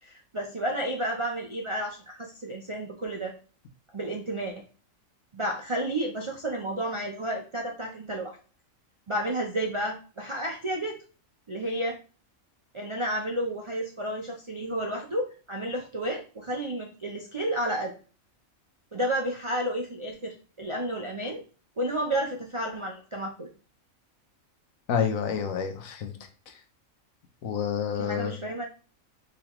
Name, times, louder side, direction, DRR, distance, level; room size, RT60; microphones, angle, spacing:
voice 1, 0.0-3.3 3.9-4.6 5.3-8.4 9.1-11.0 11.5-12.0 12.7-17.9 18.9-21.4 21.8-23.5 28.0-28.7, right 1 dB, 50° right, 1 dB, 0.3 m, -31 dB
voice 2, 24.9-26.1 27.4-28.3, left 7 dB, 75° left, 6 dB, 1.1 m, -28 dB
5.2 x 3.1 x 3.0 m, 0.38 s
omnidirectional pair, 1.4 m